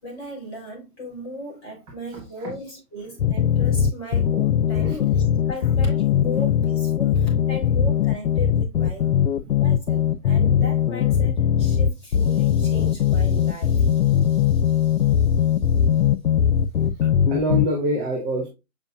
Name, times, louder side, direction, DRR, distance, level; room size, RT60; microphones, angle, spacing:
voice 1, 0.0-9.1 9.6-16.0, equal, 20° left, 4.0 m, -37 dB
voice 2, 2.1-2.5 4.8-5.0 9.0-9.2 9.4-9.5 17.0-18.5, right 1 dB, 10° right, 0.8 m, -27 dB
sound 1, 3.2-17.7, left 9 dB, 85° left, 0.6 m, -20 dB
7.0 x 5.3 x 2.5 m
figure-of-eight pair, 140°, 44 cm